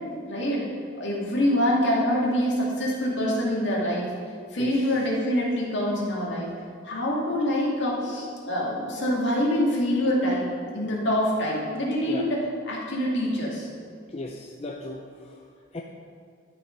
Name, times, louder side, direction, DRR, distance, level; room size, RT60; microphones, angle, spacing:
voice 1, 0.3-0.7 1.0-4.1 4.5-6.5 6.8-13.7, equal, 60° left, -4 dB, 2.3 m, -25 dB
voice 2, 14.1-15.4 15.7-15.8, left 2 dB, 30° left, 0 dB, 0.6 m, -36 dB
11.5 x 6.6 x 5.3 m, 2.2 s
head